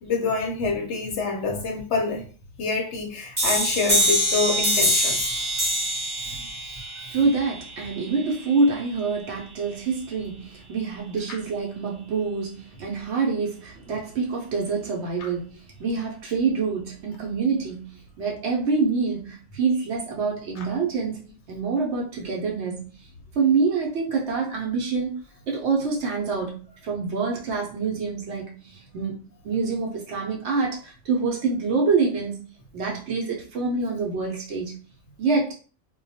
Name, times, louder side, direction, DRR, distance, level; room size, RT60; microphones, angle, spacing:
voice 1, 0.0-2.3 2.6-5.4 6.2-7.2, left 4 dB, 65° left, 0.8 m, -27 dB
sound 1, 3.4-8.8, equal, 25° right, 0.8 m, -25 dB
voice 2, 7.1-22.9 23.3-25.1 25.5-32.5 32.7-34.7 35.2-35.5, right 4 dB, 65° right, 0.8 m, -26 dB
2.2 x 2.2 x 2.6 m
omnidirectional pair, 1.4 m